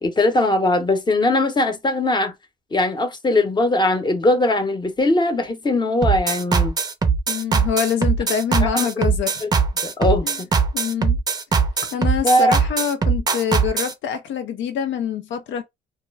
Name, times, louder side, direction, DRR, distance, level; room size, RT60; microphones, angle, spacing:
voice 1, 0.0-2.3 2.7-6.7 8.6-9.1 9.4-9.5 9.8-10.5 12.2-12.5, left 1 dB, 20° left, 0.8 m, -20 dB
sound 1, 6.0-13.9, right 5 dB, 20° right, 0.5 m, -20 dB
voice 2, 7.3-9.5 10.2-10.4 10.7-11.2 11.9-15.6, left 8 dB, 70° left, 0.4 m, -25 dB
2.3 x 2.1 x 3.2 m
cardioid pair, 90°, 20 cm